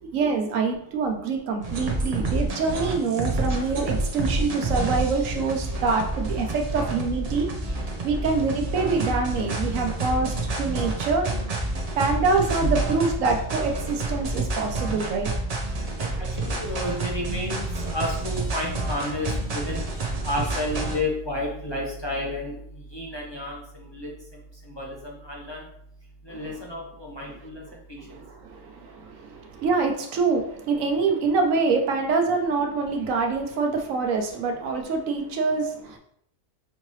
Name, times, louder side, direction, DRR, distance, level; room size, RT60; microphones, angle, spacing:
voice 1, 0.0-7.5 8.0-11.3 12.0-15.3 26.3-26.4 28.1-36.0, right 4 dB, 85° right, 3 dB, 1.1 m, -25 dB
sound 1, 1.6-21.0, right 2 dB, 40° right, 0.6 m, -29 dB
voice 2, 16.4-17.6 17.9-19.8 20.2-22.6 22.9-24.1 24.8-25.6 26.3-27.6 27.9-28.0, left 1 dB, 25° left, -3 dB, 0.6 m, -31 dB
5.6 x 2.8 x 3.1 m, 0.69 s
omnidirectional pair, 1.3 m